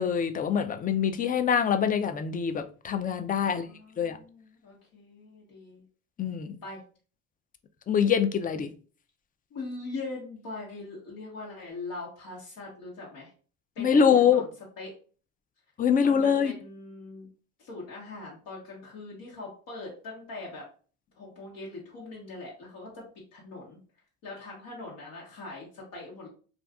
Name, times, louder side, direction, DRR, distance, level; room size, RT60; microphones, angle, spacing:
voice 1, 0.0-3.7 4.0-4.2 6.2-6.6 7.9-8.7 13.8-14.4 15.8-16.5, left 7 dB, 25° left, 8 dB, 0.4 m, -24 dB
voice 2, 3.4-5.8 6.6-6.8 9.5-13.3 13.7-14.5 14.8-14.9 16.0-17.3 17.6-20.7 21.2-23.8 24.2-26.3, left 3 dB, 70° left, -5 dB, 1.1 m, -41 dB
2.5 x 2.3 x 3.4 m, 0.39 s
supercardioid pair, 80°, 34 cm